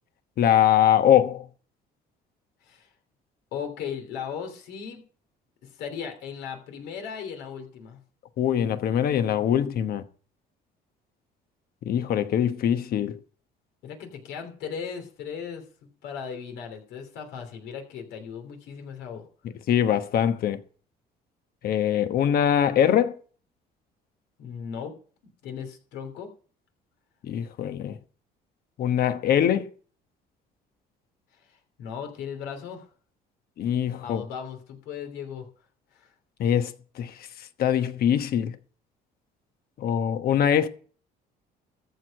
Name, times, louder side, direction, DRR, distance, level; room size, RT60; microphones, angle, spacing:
voice 1, 0.4-1.4 8.4-10.0 11.9-13.2 19.7-20.6 21.6-23.2 27.2-28.0 28.8-29.7 33.6-34.2 36.4-37.1 37.6-38.6 39.8-40.7, left 9 dB, 65° left, 1.1 m, -23 dB
voice 2, 3.5-5.0 5.6-8.0 13.8-19.3 24.4-25.0 25.4-26.3 31.8-32.9 34.0-35.5 35.9-36.1, left 7 dB, 85° left, 3.0 m, -37 dB
14.0 x 4.8 x 8.7 m
cardioid pair, 110°, 17 cm